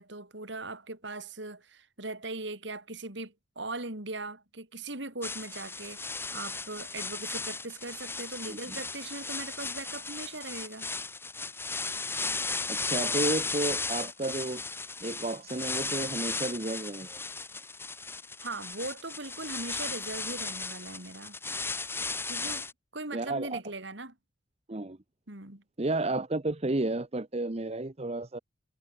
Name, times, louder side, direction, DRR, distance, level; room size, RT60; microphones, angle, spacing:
voice 1, 0.0-10.9 18.4-21.4 22.3-22.7 22.9-24.2 25.3-25.6, right 2 dB, 60° right, 3.7 m, -40 dB
sound 1, 5.2-22.7, left 3 dB, 10° left, 1.9 m, -35 dB
voice 2, 12.7-14.6 15.0-17.2 23.1-23.6 24.7-25.0 25.8-28.4, right 2 dB, 30° right, 0.9 m, -32 dB
head